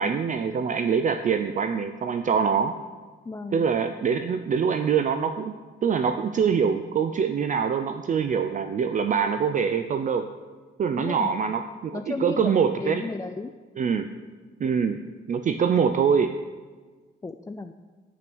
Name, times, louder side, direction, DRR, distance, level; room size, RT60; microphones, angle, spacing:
voice 1, 0.0-2.8 3.5-10.3 10.8-13.0 13.8-14.1 14.6-15.0 15.3-16.4, right 6 dB, 40° right, 9 dB, 0.5 m, -24 dB
voice 2, 3.2-3.6 11.0-11.3 11.9-12.5 12.8-13.5 17.2-17.7, left 3 dB, 15° left, 7 dB, 0.4 m, -34 dB
8.9 x 5.9 x 6.2 m, 1.4 s
cardioid pair, 90°, 20 cm